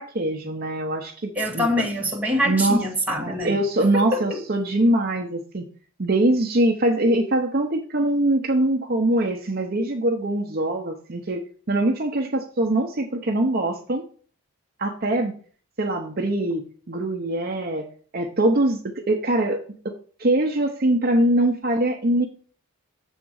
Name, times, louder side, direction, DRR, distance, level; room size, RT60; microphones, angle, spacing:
voice 1, 0.0-1.7 2.5-2.8 3.2-5.6 6.0-11.4 11.7-14.0 14.8-15.3 15.8-19.6 20.2-22.3, right 1 dB, 45° right, 4 dB, 0.7 m, -23 dB
voice 2, 1.3-3.6 3.9-4.4, left 1 dB, 5° right, -2 dB, 1.6 m, -24 dB
7.2 x 3.7 x 6.3 m, 0.43 s
head